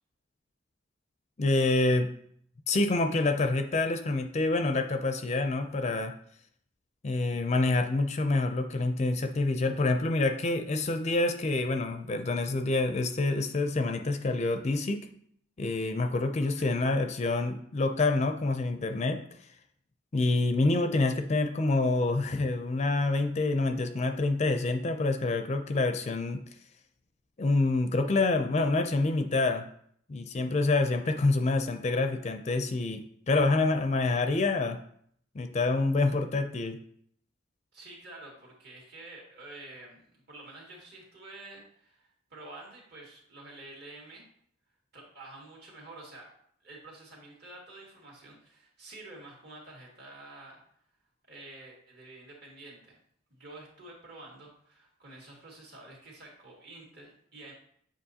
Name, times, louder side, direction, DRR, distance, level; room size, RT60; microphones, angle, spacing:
voice 1, 1.4-2.1 2.7-6.1 7.0-15.0 15.6-19.2 20.1-26.4 27.4-29.6 30.1-33.0 33.3-34.8 35.3-36.8, left 2 dB, 35° left, 7 dB, 0.4 m, -27 dB
voice 2, 37.7-44.2 44.9-46.3 46.6-50.6 51.3-53.0 53.3-57.5, right 2 dB, 55° right, -2 dB, 1.9 m, -49 dB
7.8 x 5.0 x 2.8 m, 0.65 s
head